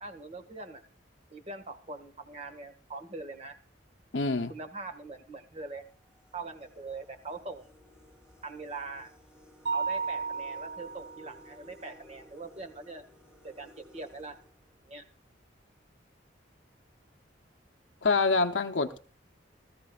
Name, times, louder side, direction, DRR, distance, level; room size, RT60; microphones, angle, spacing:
voice 1, 0.0-0.8 1.3-3.6 4.5-5.8 6.3-7.7 8.4-9.1 9.7-13.0 13.4-14.4 14.9-15.0, right 3 dB, 35° right, 1.7 m, -42 dB
sound 1, 3.8-4.1 4.9-5.0 5.5-15.2, left 1 dB, 5° right, 3.8 m, -57 dB
voice 2, 4.1-4.5 18.0-19.0, left 4 dB, 75° left, 0.7 m, -26 dB
Mallet percussion, 9.7-11.4, right 5 dB, 75° right, 1.4 m, -33 dB
18.5 x 14.5 x 2.4 m
head